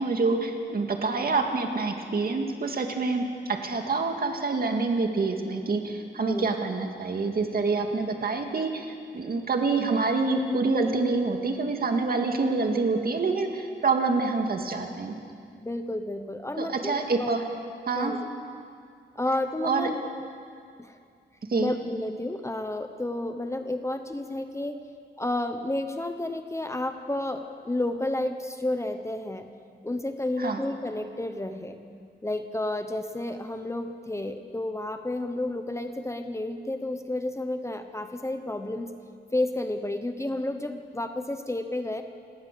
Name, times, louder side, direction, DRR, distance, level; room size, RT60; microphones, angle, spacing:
voice 1, 0.0-15.1 16.6-17.4 17.9-18.1 19.6-19.9 21.5-21.7 30.4-30.6, right 3 dB, 50° right, 3 dB, 2.2 m, -27 dB
voice 2, 15.6-17.3 17.9-18.2 19.1-20.0 20.8-21.0 21.5-24.8 25.2-29.5 29.8-31.8 32.2-38.9 39.3-42.0, left 1 dB, 15° left, 7 dB, 1.0 m, -31 dB
29.5 x 17.5 x 6.9 m, 2.3 s
wide cardioid pair, 155°, 19 cm